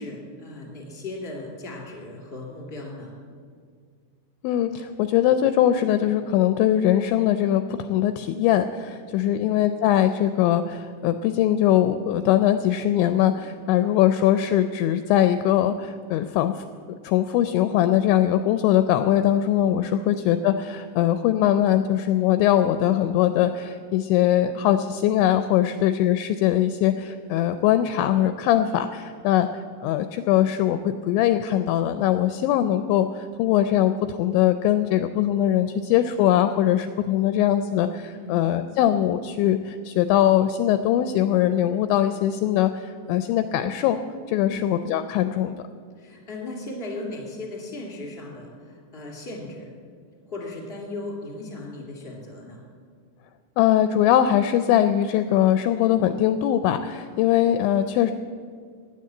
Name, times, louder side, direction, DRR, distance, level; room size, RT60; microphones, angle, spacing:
voice 1, 0.0-3.1 13.5-13.8 19.9-20.1 25.6-25.9 38.1-38.3 44.4-44.7 46.0-49.7 50.2-52.6, left 2 dB, 25° left, -1 dB, 1.5 m, -37 dB
voice 2, 4.4-16.6 17.0-29.5 29.8-44.0 44.3-45.6 53.6-58.1, left 11 dB, 85° left, 10 dB, 2.7 m, -21 dB
15.5 x 10.0 x 7.6 m, 2.1 s
omnidirectional pair, 5.7 m